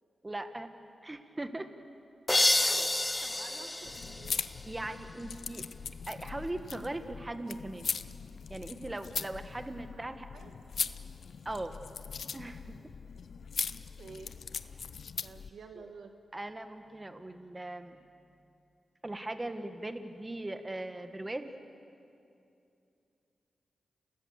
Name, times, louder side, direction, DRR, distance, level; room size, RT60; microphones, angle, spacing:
voice 1, 0.2-0.7 1.0-1.7 2.6-2.9 4.6-5.6 6.1-7.9 8.5-10.3 11.5-11.8 12.3-12.8 16.3-18.0 19.0-21.5, right 1 dB, 25° right, 8 dB, 1.8 m, -39 dB
sound 1, 2.3-5.0, left 1 dB, 25° left, 0.9 m, -29 dB
voice 2, 3.2-4.3 10.0-10.1 10.3-10.5 14.0-14.4 15.2-16.1, right 5 dB, 80° right, 6 dB, 1.6 m, -50 dB
sound 2, 3.8-15.5, left 6 dB, 75° left, 0.7 m, -40 dB
29.5 x 20.0 x 6.8 m, 2.6 s
supercardioid pair, 45°, 0 cm